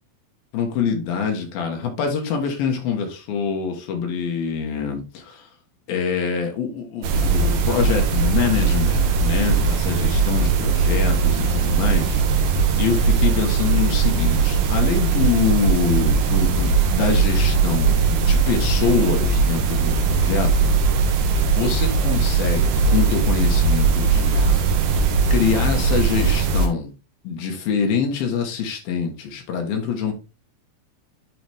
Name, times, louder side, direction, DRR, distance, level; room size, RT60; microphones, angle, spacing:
voice 1, 0.5-5.5 5.9-12.2 12.8-20.5 21.5-24.6 25.3-26.9 27.2-30.1, left 6 dB, 70° left, 3 dB, 3.1 m, -25 dB
sound 1, 7.0-26.7, right 5 dB, 70° right, 2.7 m, -19 dB
9.3 x 4.0 x 3.4 m, 0.31 s
omnidirectional pair, 4.5 m